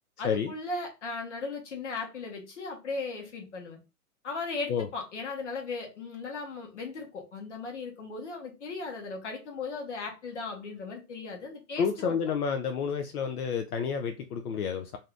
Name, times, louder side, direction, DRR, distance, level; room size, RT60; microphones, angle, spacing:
voice 1, 0.2-3.8 4.2-12.2, left 3 dB, 50° left, 1.1 m, -37 dB
voice 2, 11.8-15.0, left 6 dB, 75° left, 0.5 m, -30 dB
2.7 x 2.3 x 3.3 m
hypercardioid pair, 175°, 46 cm